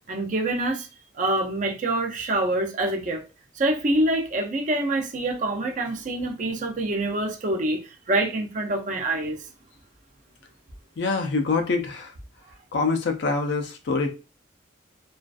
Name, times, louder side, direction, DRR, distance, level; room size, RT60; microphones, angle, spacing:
voice 1, 0.1-0.9 1.1-3.2 3.6-9.4, right 1 dB, 40° right, 0.4 m, -25 dB
voice 2, 11.0-12.1 12.7-14.1, left 4 dB, 60° left, 0.4 m, -25 dB
2.4 x 2.2 x 2.4 m
head